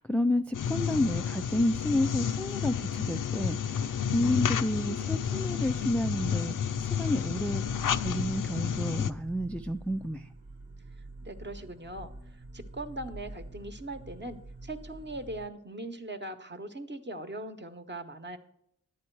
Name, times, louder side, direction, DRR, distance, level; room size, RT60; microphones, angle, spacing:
voice 1, 0.0-7.6 8.0-10.3, left 1 dB, 5° left, 6 dB, 0.4 m, -30 dB
sound 1, 0.5-9.1, left 7 dB, 65° left, 0.5 m, -31 dB
sound 2, 5.6-15.5, right 2 dB, 80° right, 1.3 m, -47 dB
voice 2, 11.2-12.1 12.5-18.4, right 1 dB, 30° right, 7 dB, 1.1 m, -40 dB
11.0 x 8.5 x 4.6 m, 0.75 s
cardioid pair, 50°, 34 cm